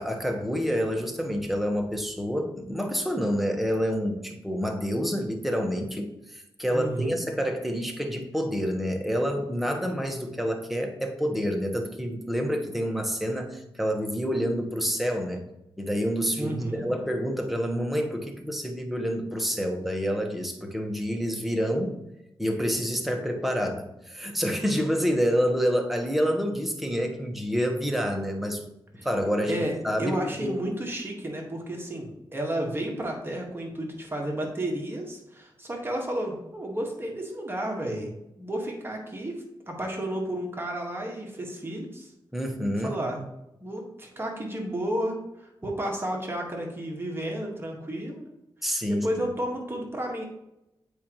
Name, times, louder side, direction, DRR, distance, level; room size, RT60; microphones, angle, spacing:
voice 1, 0.0-15.4 15.8-22.0 22.4-28.6 29.0-30.6 42.3-43.0 48.6-49.1, equal, ahead, 3 dB, 1.3 m, -28 dB
voice 2, 6.7-7.2 16.4-16.8 29.0-29.1 29.5-42.1 42.8-43.2 43.6-48.3 48.9-50.2, right 1 dB, 25° right, 0 dB, 1.7 m, -32 dB
8.4 x 5.0 x 3.1 m, 0.87 s
cardioid pair, 60°, 9 cm